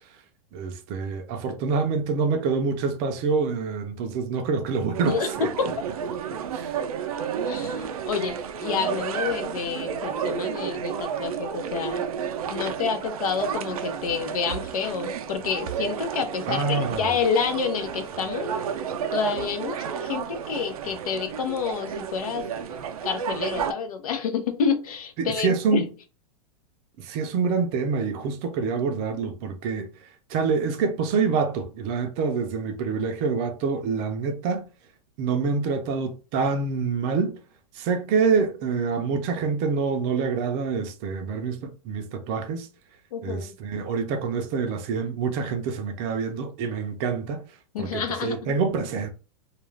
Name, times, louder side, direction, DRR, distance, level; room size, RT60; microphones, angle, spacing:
voice 1, 0.5-5.5 6.3-6.7 16.5-17.2 25.2-25.9 27.0-29.9 30.3-34.7 35.2-37.4 37.8-42.7 43.2-47.4 47.8-49.1, right 5 dB, 35° right, 0.4 m, -26 dB
sound 1, 4.9-23.7, right 7 dB, 85° right, 0.4 m, -31 dB
voice 2, 5.1-5.7 7.4-12.0 12.5-18.5 19.1-22.4 23.0-25.9 43.1-43.5 47.7-48.5, left 6 dB, 85° left, 0.7 m, -28 dB
2.4 x 2.3 x 3.2 m
supercardioid pair, 155°, 18 cm